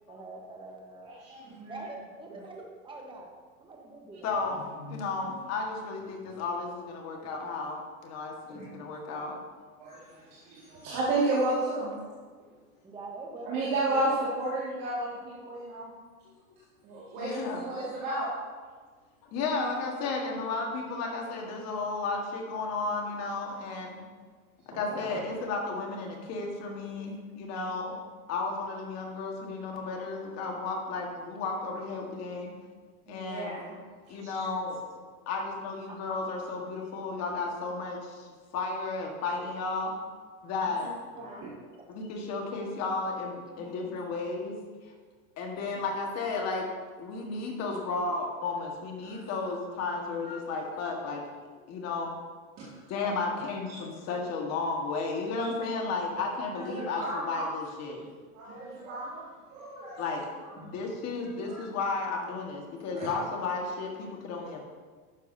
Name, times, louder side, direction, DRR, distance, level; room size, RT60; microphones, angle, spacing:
voice 1, 0.1-1.2 1.7-3.3 3.6-4.6 12.8-14.0 24.7-25.2 35.9-36.0, right 2 dB, 10° right, 0 dB, 1.1 m, -44 dB
voice 2, 1.0-1.7 2.3-2.4 4.8-5.0 6.2-6.3 8.5-8.7 9.8-11.9 13.4-15.9 16.8-18.3 33.1-33.8 34.1-34.4 40.8-41.6 43.6-43.7 49.0-49.3 50.2-50.3 50.9-51.0 52.6-52.7 55.4-55.5 56.5-57.5 58.0-58.1 58.3-59.2 59.5-60.0 60.4-60.7 61.5-61.6 62.7-63.1, right 2 dB, 35° right, -8 dB, 2.1 m, -33 dB
voice 3, 4.2-9.4 17.2-17.7 19.3-24.0 24.7-27.9 28.3-32.5 33.1-33.6 34.1-34.8 35.3-38.3 38.5-39.9 40.4-40.9 41.9-44.6 45.4-46.7 47.0-51.2 51.7-52.1 52.9-58.0 60.0-60.2 60.6-64.6, left 3 dB, 35° left, 1 dB, 1.6 m, -33 dB
11.5 x 7.1 x 2.7 m, 1.5 s
supercardioid pair, 140°, 44 cm